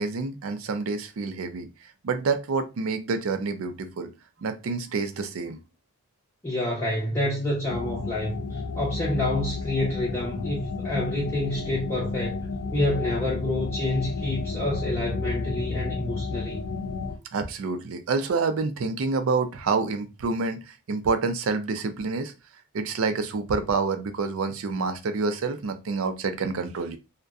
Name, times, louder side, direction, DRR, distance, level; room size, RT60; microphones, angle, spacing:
voice 1, 0.0-1.7 2.0-4.1 4.4-5.6 17.3-22.3 22.7-27.0, right 4 dB, 80° right, 0.4 m, -28 dB
voice 2, 6.4-12.5 12.7-16.6, left 1 dB, 15° left, 0.5 m, -28 dB
sound 1, 7.7-17.2, left 4 dB, 85° left, 0.3 m, -32 dB
2.6 x 2.1 x 2.3 m
head